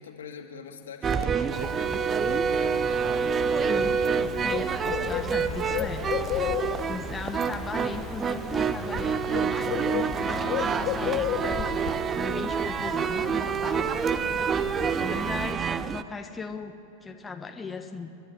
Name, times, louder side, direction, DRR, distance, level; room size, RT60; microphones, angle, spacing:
voice 1, 0.0-3.6 5.0-5.7, left 6 dB, 65° left, 3 dB, 2.4 m, -45 dB
sound 1, 1.0-16.0, right 6 dB, 20° right, 0.7 m, -27 dB
Bird, 1.5-15.5, left 12 dB, 40° left, 1.0 m, -35 dB
voice 2, 4.4-6.0 6.9-13.9 15.0-16.7 17.0-18.1, left 4 dB, 15° left, 4 dB, 1.2 m, -38 dB
29.5 x 11.5 x 9.7 m, 2.7 s
figure-of-eight pair, 90°, 0 cm